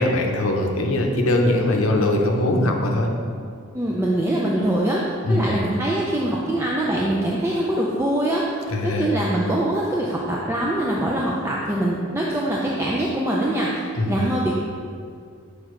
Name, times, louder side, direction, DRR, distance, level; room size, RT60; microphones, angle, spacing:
voice 1, 0.0-3.1 5.2-5.6 8.7-9.1 14.0-14.2, left 1 dB, 70° left, 2 dB, 0.7 m, -21 dB
voice 2, 3.7-5.0 5.3-14.5, right 1 dB, 10° right, -5 dB, 0.4 m, -23 dB
6.3 x 4.9 x 3.1 m, 2.3 s
head